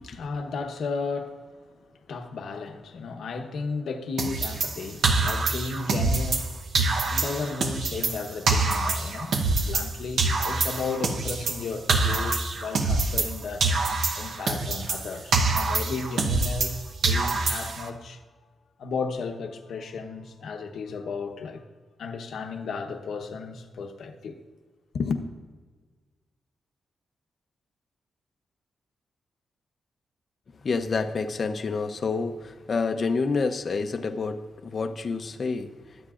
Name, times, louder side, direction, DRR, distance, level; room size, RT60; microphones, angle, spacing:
voice 1, 0.0-6.5 7.1-13.7 14.1-18.2 18.8-21.6 22.0-24.4 24.9-25.2, left 4 dB, 70° left, 1.0 m, -34 dB
sound 1, 4.2-6.5 6.8-9.9 10.2-13.4 13.6-16.8 17.0-17.9, right 3 dB, 65° right, 0.9 m, -25 dB
voice 2, 30.6-35.7, left 4 dB, 40° left, 0.7 m, -28 dB
22.5 x 8.7 x 2.5 m
wide cardioid pair, 165°, 0 cm